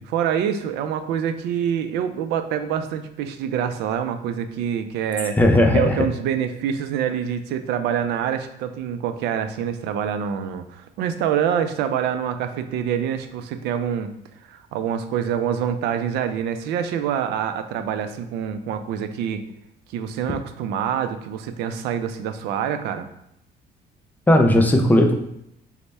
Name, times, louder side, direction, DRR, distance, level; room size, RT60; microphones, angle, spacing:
voice 1, 0.1-5.4 5.7-14.1 14.5-19.4 19.9-23.1, right 8 dB, 85° right, 9 dB, 0.4 m, -26 dB
voice 2, 5.4-6.0 24.3-25.1, left 1 dB, 10° left, 4 dB, 0.4 m, -16 dB
3.2 x 2.1 x 4.1 m, 0.78 s
cardioid pair, 110°, 17 cm